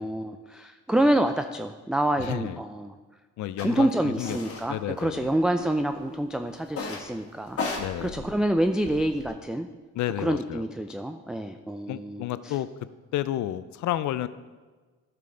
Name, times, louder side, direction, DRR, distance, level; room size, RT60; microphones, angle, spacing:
voice 1, 0.0-3.0 3.6-9.7 10.2-12.6, right 1 dB, ahead, 7 dB, 0.3 m, -27 dB
voice 2, 2.2-2.6 3.4-4.4 4.7-5.3 7.8-8.3 10.0-10.6 11.9-12.7 13.1-14.3, left 13 dB, 70° left, 15 dB, 0.5 m, -31 dB
sound 1, 3.6-3.7 4.2-4.7 5.0-5.7 6.7-7.1 7.5-9.3, left 4 dB, 50° left, 1.6 m, -35 dB
11.0 x 6.0 x 3.8 m, 1.4 s
cardioid pair, 90°, 30 cm